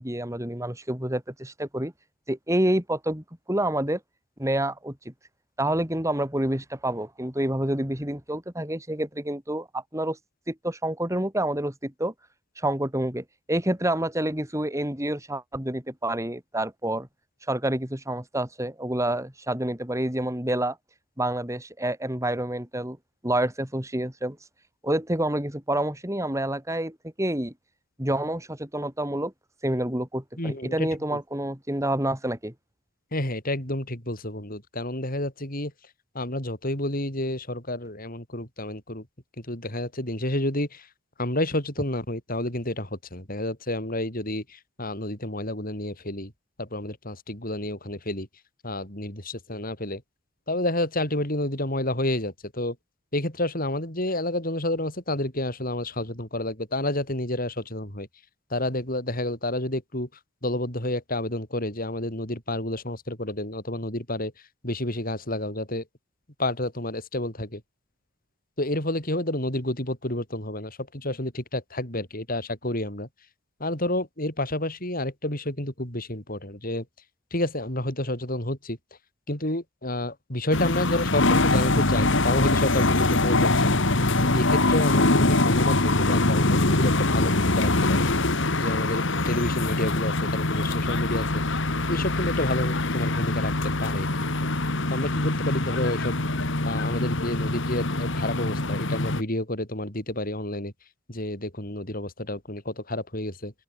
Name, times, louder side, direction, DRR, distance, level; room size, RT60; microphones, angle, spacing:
voice 1, 0.0-1.9 2.3-4.0 4.4-5.1 5.6-10.2 10.5-12.1 12.6-17.1 17.5-20.8 21.2-23.0 23.2-24.4 24.8-27.5 28.0-29.3 29.6-32.5, right 1 dB, 15° right, 3.8 m, -28 dB
voice 2, 30.4-31.2 33.1-35.7 36.1-39.1 39.4-40.9 41.2-46.3 46.6-48.3 48.6-50.0 50.5-52.8 53.1-58.1 58.5-60.1 60.4-64.3 64.6-65.8 66.4-67.6 68.6-73.1 73.6-76.9 77.3-78.8 79.3-83.8 84.3-88.1 88.6-91.6 91.9-94.1 94.4-94.5 94.9-96.2 96.6-100.7 101.1-103.5, left 1 dB, 45° left, 6.5 m, -29 dB
sound 1, 80.5-99.2, left 2 dB, 60° left, 2.4 m, -23 dB
open air
head